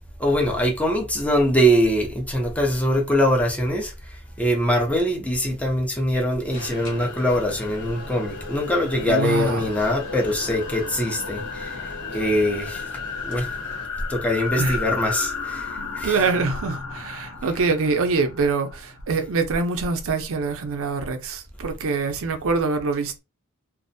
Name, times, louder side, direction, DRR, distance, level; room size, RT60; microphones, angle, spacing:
voice 1, 0.2-3.9 4.4-11.8 12.1-12.8 13.2-13.5 14.1-15.7 15.9-16.2, equal, 5° left, 0.6 m, -22 dB
Alarm, 6.5-13.8, left 2 dB, 55° left, 0.9 m, -42 dB
sound 1, 6.6-19.3, left 5 dB, 80° left, 0.6 m, -34 dB
voice 2, 9.0-9.7 14.6-14.8 16.0-23.2, right 4 dB, 65° right, 0.5 m, -24 dB
2.5 x 2.1 x 2.6 m
head